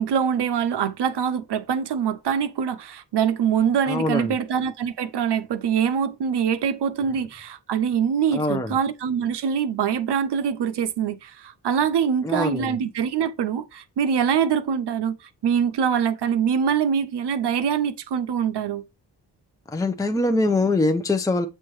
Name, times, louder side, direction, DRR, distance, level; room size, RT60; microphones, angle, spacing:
voice 1, 0.0-15.1 15.4-18.8, right 7 dB, 70° right, 0.7 m, -24 dB
voice 2, 3.9-4.4 8.3-8.8 12.2-12.8 19.7-21.5, left 2 dB, 10° left, 0.6 m, -23 dB
7.6 x 4.5 x 3.1 m
cardioid pair, 50°, 43 cm